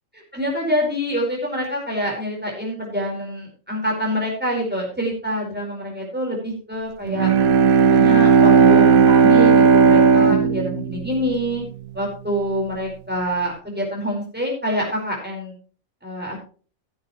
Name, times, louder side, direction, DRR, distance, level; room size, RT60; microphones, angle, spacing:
voice 1, 0.3-7.3 7.9-11.6 11.9-15.5 16.0-16.4, equal, 5° right, -2 dB, 5.0 m, -26 dB
Bowed string instrument, 7.1-11.9, right 5 dB, 90° right, 1.3 m, -15 dB
16.5 x 8.6 x 3.2 m, 0.39 s
omnidirectional pair, 1.4 m